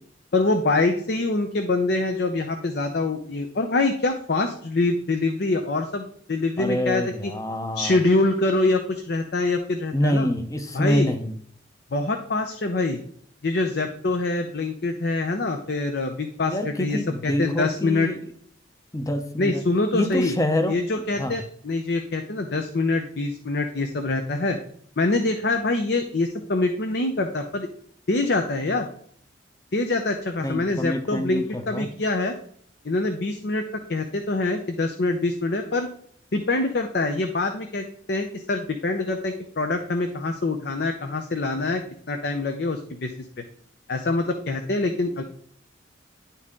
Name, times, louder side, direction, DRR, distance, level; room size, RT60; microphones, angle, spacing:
voice 1, 0.3-7.3 7.8-10.3 10.7-11.1 11.9-13.0 13.4-18.1 19.4-20.3 20.7-24.6 25.0-27.7 28.1-28.9 29.7-32.3 32.8-33.6 33.9-35.9 36.3-41.8 42.1-43.1 43.9-45.2, left 2 dB, 60° left, 5 dB, 0.7 m, -25 dB
voice 2, 6.6-8.0 9.9-11.4 16.5-18.2 18.9-19.7 19.9-20.8 21.1-21.4 30.4-31.9, left 1 dB, 20° left, 7 dB, 0.7 m, -26 dB
10.5 x 4.1 x 3.7 m, 0.62 s
head